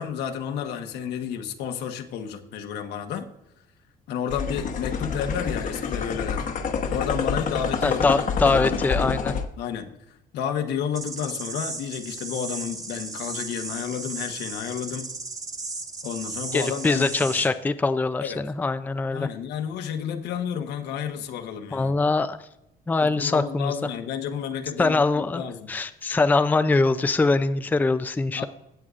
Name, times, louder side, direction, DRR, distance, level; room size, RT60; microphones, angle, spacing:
voice 1, 0.0-3.3 4.1-6.5 6.9-9.2 9.6-15.1 16.0-17.4 18.2-18.4 19.1-22.0 23.0-25.7 28.3-28.5, left 8 dB, 80° left, 6 dB, 1.1 m, -31 dB
sound 1, 4.3-9.5, left 6 dB, 50° left, 1.0 m, -27 dB
voice 2, 7.8-9.3 16.5-19.3 21.7-22.4 22.9-23.7 24.8-25.4 25.7-28.5, left 3 dB, 10° left, 10 dB, 0.4 m, -23 dB
sound 2, 10.9-17.5, right 3 dB, 20° right, 1.3 m, -35 dB
16.0 x 7.9 x 2.5 m, 0.86 s
cardioid pair, 110°, 17 cm